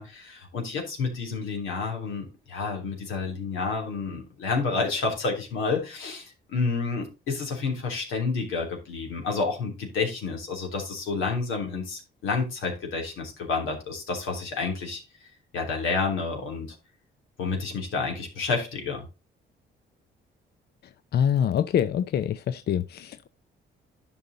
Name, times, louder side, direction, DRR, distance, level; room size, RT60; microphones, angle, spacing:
voice 1, 0.0-15.0 15.5-16.7 17.4-19.0, left 4 dB, 90° left, 3.2 m, -29 dB
voice 2, 20.8-23.3, left 9 dB, 55° left, 0.5 m, -25 dB
10.5 x 5.5 x 4.0 m
cardioid pair, 90°, 20 cm